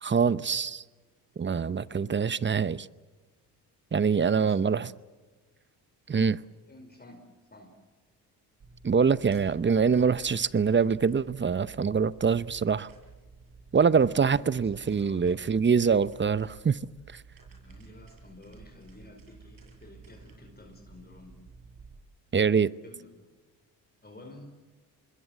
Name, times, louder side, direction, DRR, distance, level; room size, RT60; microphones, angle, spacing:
voice 1, 0.0-0.8 1.4-2.9 3.9-4.9 6.1-6.4 8.8-12.9 13.7-16.8 17.1-17.2 22.3-22.7, right 6 dB, 25° right, 0.8 m, -24 dB
voice 2, 1.8-2.1 3.9-4.8 6.7-7.7 13.7-15.4 17.5-21.4 22.8-23.2 24.0-24.5, left 1 dB, 25° left, 4.8 m, -51 dB
sound 1, 8.6-21.9, right 4 dB, 50° right, 7.4 m, -52 dB
25.5 x 21.0 x 7.7 m
supercardioid pair, 65°, 42 cm